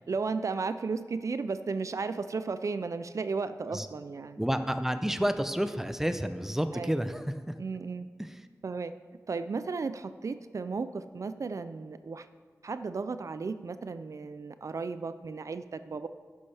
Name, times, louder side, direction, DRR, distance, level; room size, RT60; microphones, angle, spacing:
voice 1, 0.1-4.4 6.7-7.1 7.6-8.1 8.6-8.9 9.3-12.3 12.6-16.1, right 4 dB, 60° right, 11 dB, 0.4 m, -34 dB
voice 2, 4.4-7.5 8.2-8.3, equal, 5° right, 9 dB, 0.6 m, -30 dB
11.5 x 9.8 x 3.4 m, 1.6 s
wide cardioid pair, 75°, 6 cm